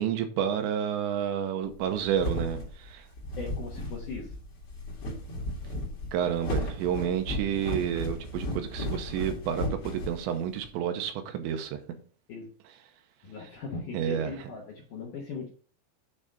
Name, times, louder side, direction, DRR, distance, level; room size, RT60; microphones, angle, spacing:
voice 1, 0.0-3.1 6.1-11.8 13.9-14.5, right 9 dB, 85° right, 3.0 m, -30 dB
sound 1, 1.7-10.7, equal, 45° left, 1.8 m, -34 dB
voice 2, 3.4-4.3 12.3-12.5 13.2-15.5, left 4 dB, 65° left, 2.1 m, -39 dB
8.8 x 3.8 x 5.1 m
omnidirectional pair, 5.3 m